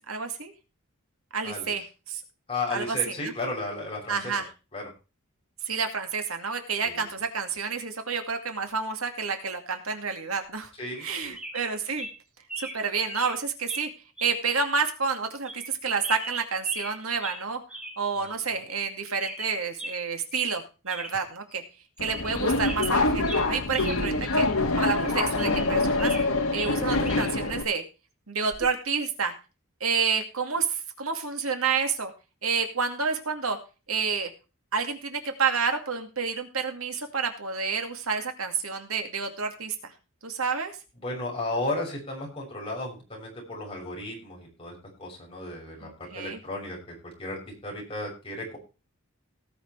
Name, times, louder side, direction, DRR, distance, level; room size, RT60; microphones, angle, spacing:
voice 1, 0.1-0.5 1.3-2.2 2.7-3.3 4.1-4.5 5.7-10.7 11.0-12.1 12.6-13.9 14.2-17.6 18.0-21.6 22.0-24.5 24.8-27.8 28.3-29.3 29.8-32.1 32.4-33.6 33.9-34.3 34.7-39.9 40.2-40.7 45.8-46.4, right 5 dB, 85° right, 5 dB, 2.4 m, -29 dB
voice 2, 2.5-4.3 4.7-4.8 6.8-7.0 10.8-11.3 41.0-48.6, left 2 dB, 25° left, -2 dB, 6.2 m, -34 dB
sound 1, 10.9-11.1 11.4-11.7 12.0-12.1 12.5-12.8 13.1-13.4 13.7-13.9 14.2-14.4 14.8-14.9 15.4-15.7 16.0-16.9 17.2-17.4 17.7-18.0 18.3-18.4 18.7-18.9 19.2-20.0 20.3-20.6 20.9-21.1 21.5-21.6 22.0-22.4 22.6-24.0 24.3-24.4 24.9-26.3 26.6-27.3 28.5-28.7, right 1 dB, 5° right, 2.9 m, -38 dB
Subway metro underground, 22.0-27.6, left 2 dB, 80° left, 1.8 m, -25 dB
18.0 x 6.3 x 4.6 m, 0.31 s
head